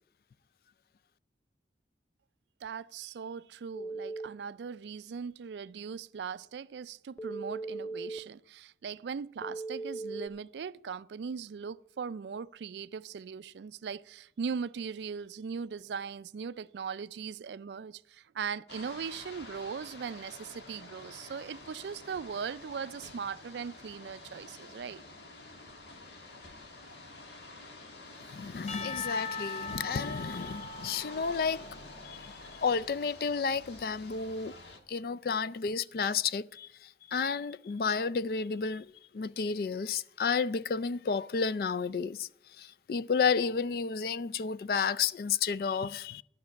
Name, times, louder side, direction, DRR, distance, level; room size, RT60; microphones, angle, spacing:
voice 1, 2.6-25.0, right 6 dB, 75° right, 0.4 m, -39 dB
Telephone, 3.7-4.3 7.2-8.2 9.4-10.3, right 3 dB, 10° left, 0.6 m, -38 dB
sound 1, 18.7-34.8, left 2 dB, 75° left, 1.6 m, -49 dB
voice 2, 28.3-31.7 32.0-32.3 32.6-34.5 34.9-42.3 42.6-46.2, left 5 dB, 55° left, 0.3 m, -31 dB
Percussion / Church bell, 28.7-32.9, left 4 dB, 35° left, 0.8 m, -41 dB
12.0 x 6.0 x 8.4 m
head